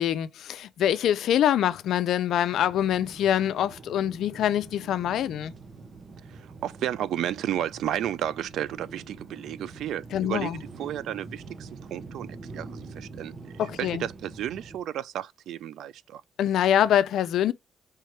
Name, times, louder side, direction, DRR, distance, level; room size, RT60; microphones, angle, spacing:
voice 1, 0.0-5.5 10.1-10.6 13.6-14.0 16.4-17.5, left 10 dB, 75° left, 0.4 m, -24 dB
sound 1, 2.5-14.8, right 3 dB, 40° right, 1.0 m, -44 dB
voice 2, 6.3-10.5 10.8-12.7 13.0-13.5 13.8-16.2, right 11 dB, 80° right, 0.4 m, -32 dB
4.5 x 3.6 x 3.1 m
cardioid pair, 90°, 0 cm